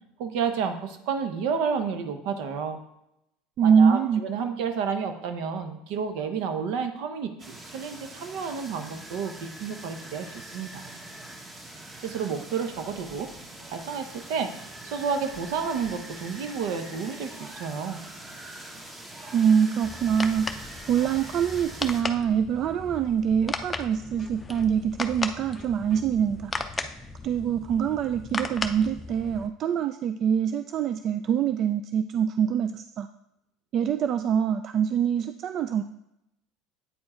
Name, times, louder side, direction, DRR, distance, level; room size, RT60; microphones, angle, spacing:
voice 1, 0.2-2.8 3.6-10.9 12.0-13.3 13.7-14.5 14.8-18.0, right 6 dB, 70° right, 7 dB, 1.0 m, -31 dB
voice 2, 3.6-4.2 19.3-20.5 20.9-26.5 27.2-33.1 33.7-35.8, right 8 dB, 45° right, 9 dB, 0.3 m, -24 dB
sound 1, 7.4-22.0, right 1 dB, 15° right, 1.2 m, -43 dB
sound 2, 19.8-29.5, left 3 dB, 15° left, 0.5 m, -36 dB
8.4 x 4.5 x 4.3 m, 0.83 s
supercardioid pair, 120°, 0 cm